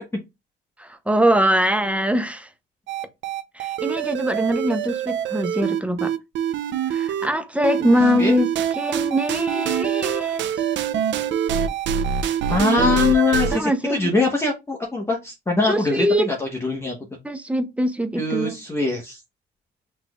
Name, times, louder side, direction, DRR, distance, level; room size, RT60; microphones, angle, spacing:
voice 1, 0.8-2.5 3.5-6.1 6.9-8.5 8.7-10.6 12.8-13.0 13.5-14.1 15.7-16.3 17.2-18.6, equal, 5° right, 0.8 m, -22 dB
sound 1, 2.9-7.3 7.6-13.6, right 8 dB, 65° right, 0.6 m, -25 dB
voice 2, 12.5-16.9 18.2-19.2, left 3 dB, 10° left, 1.0 m, -22 dB
5.8 x 3.2 x 2.3 m
supercardioid pair, 80°, 21 cm